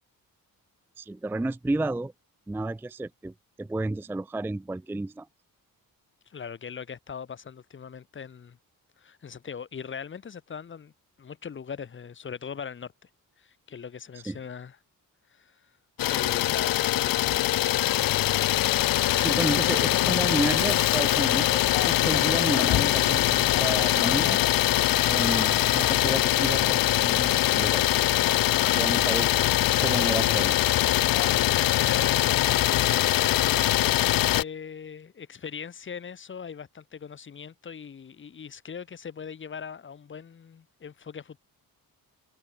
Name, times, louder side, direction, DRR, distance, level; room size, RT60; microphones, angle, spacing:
voice 1, 1.0-2.1 2.5-5.3 14.3-14.4 19.2-21.6 21.9-24.5 25.1-27.9 28.8-29.3 29.8-30.6, right 2 dB, 5° right, 0.4 m, -31 dB
voice 2, 6.3-8.6 9.0-10.9 11.2-13.1 13.4-14.8 15.3-15.7 16.1-17.4 28.6-29.0 31.2-41.4, left 6 dB, 35° left, 1.3 m, -40 dB
Idling, 16.0-34.4, left 15 dB, 70° left, 0.6 m, -23 dB
Chewing mastication, 20.0-27.3, left 10 dB, 50° left, 1.0 m, -41 dB
wide cardioid pair, 165°, 35 cm